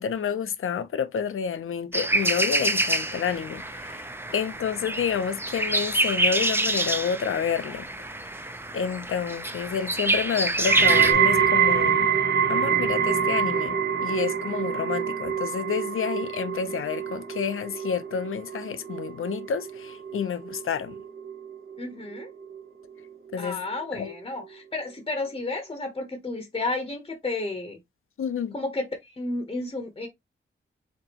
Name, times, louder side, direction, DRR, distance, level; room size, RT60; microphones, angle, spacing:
voice 1, 0.0-4.0 4.3-7.9 8.7-12.1 12.5-21.0 23.3-23.6 23.9-24.1 28.2-28.5, left 7 dB, 75° left, 0.6 m, -29 dB
sound 1, 1.9-11.1, right 2 dB, 10° right, 0.5 m, -27 dB
sound 2, 10.6-21.8 22.1-22.6 23.3-23.4, right 7 dB, 55° right, 0.9 m, -25 dB
voice 2, 21.8-22.3 23.4-27.8 28.5-30.1, left 2 dB, 25° left, 0.8 m, -32 dB
4.3 x 3.8 x 2.9 m
wide cardioid pair, 160°, 21 cm